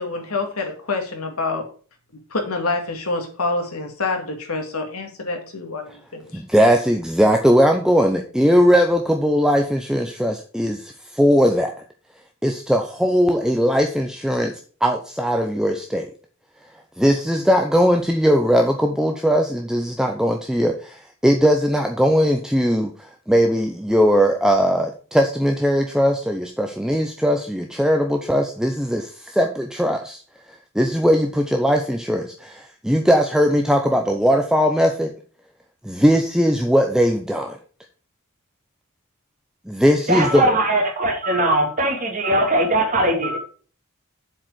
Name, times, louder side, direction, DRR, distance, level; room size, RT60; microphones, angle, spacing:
voice 1, 0.0-1.7 2.3-6.4, left 3 dB, 80° left, 4 dB, 2.2 m, -27 dB
voice 2, 6.3-11.7 12.4-16.1 17.0-30.2 30.7-35.1 35.8-37.6 39.7-40.5, equal, 5° right, 4 dB, 0.6 m, -19 dB
voice 3, 40.1-43.4, right 1 dB, 35° right, 1 dB, 2.4 m, -20 dB
7.5 x 4.9 x 6.2 m, 0.40 s
head